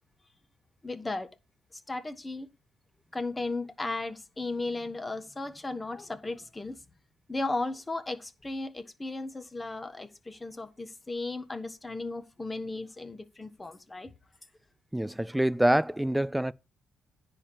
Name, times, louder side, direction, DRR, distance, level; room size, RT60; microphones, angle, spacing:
voice 1, 0.8-1.3 1.9-2.5 3.1-6.8 7.3-14.1, left 2 dB, 20° left, 1.2 m, -35 dB
voice 2, 14.9-16.5, right 1 dB, 5° right, 0.4 m, -26 dB
9.9 x 4.4 x 7.1 m
cardioid pair, 90°, 0 cm